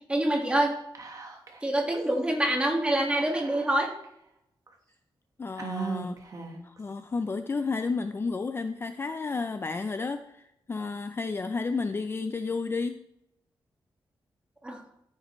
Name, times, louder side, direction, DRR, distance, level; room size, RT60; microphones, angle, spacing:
voice 1, 0.1-0.8 1.6-3.9 14.6-14.8, right 1 dB, 10° right, 1 dB, 1.7 m, -26 dB
Whispering, 0.9-1.7 1.9-2.0 3.2-4.0 4.7-4.8 5.6-6.8, right 5 dB, 40° right, 1.2 m, -37 dB
voice 2, 5.4-6.2 6.6-13.1, left 4 dB, 25° left, 9 dB, 0.4 m, -32 dB
13.5 x 7.4 x 3.1 m, 0.80 s
wide cardioid pair, 170°, 9 cm